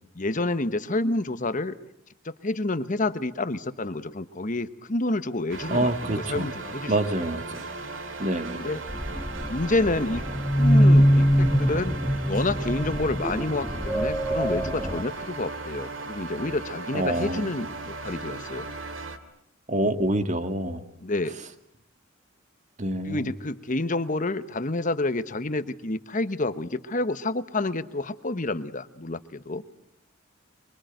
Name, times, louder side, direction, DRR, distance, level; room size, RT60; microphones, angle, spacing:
voice 1, 0.1-1.8 2.2-6.9 8.5-8.8 9.5-10.2 10.6-18.7 21.0-21.4 23.0-29.6, left 2 dB, 40° left, 12 dB, 1.2 m, -29 dB
sound 1, 5.5-19.2, right 3 dB, 70° right, 2.3 m, -37 dB
voice 2, 5.7-6.5 6.9-7.7 8.2-8.6 16.9-17.5 19.7-20.8 22.8-23.3, right 1 dB, 35° right, 8 dB, 1.9 m, -26 dB
sound 2, 8.9-15.0, equal, ahead, 1.1 m, -23 dB
24.5 x 24.5 x 9.2 m, 0.78 s
head